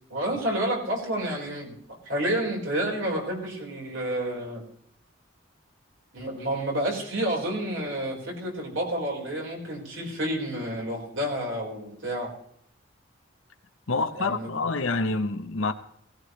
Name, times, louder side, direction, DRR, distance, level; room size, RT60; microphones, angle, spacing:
voice 1, 0.1-4.6 6.1-12.3 14.1-14.7, right 1 dB, 70° right, 4.8 m, -30 dB
voice 2, 13.9-15.7, left 3 dB, 75° left, 0.9 m, -27 dB
18.0 x 17.0 x 3.3 m
head